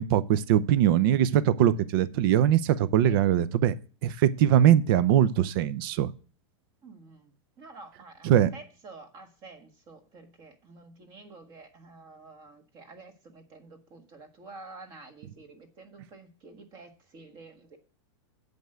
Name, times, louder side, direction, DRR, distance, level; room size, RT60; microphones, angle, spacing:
voice 1, 0.0-3.7 4.0-6.1 8.2-8.5, right 10 dB, 50° right, 16 dB, 0.6 m, -22 dB
voice 2, 6.8-17.8, right 3 dB, 30° right, 6 dB, 1.5 m, -49 dB
7.9 x 5.3 x 7.6 m, 0.39 s
supercardioid pair, 155°, 16 cm